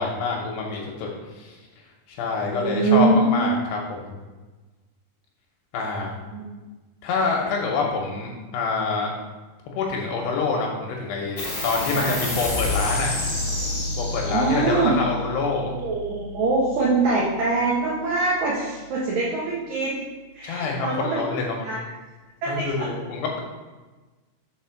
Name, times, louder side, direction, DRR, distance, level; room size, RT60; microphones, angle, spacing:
voice 1, 0.0-1.6 2.1-4.2 5.7-6.1 7.0-9.1 9.8-13.1 14.0-15.7 20.4-21.6 22.5-23.4, left 4 dB, 75° left, 0 dB, 2.6 m, -26 dB
voice 2, 2.5-3.5 6.3-6.5 11.9-12.1 14.3-14.9 15.8-20.1 20.3-21.3 21.6-21.8 22.4-22.9, right 3 dB, 85° right, -5 dB, 1.9 m, -23 dB
sound 1, 11.4-18.3, left 2 dB, 35° left, 1.0 m, -30 dB
7.1 x 4.9 x 5.7 m, 1.2 s
omnidirectional pair, 5.8 m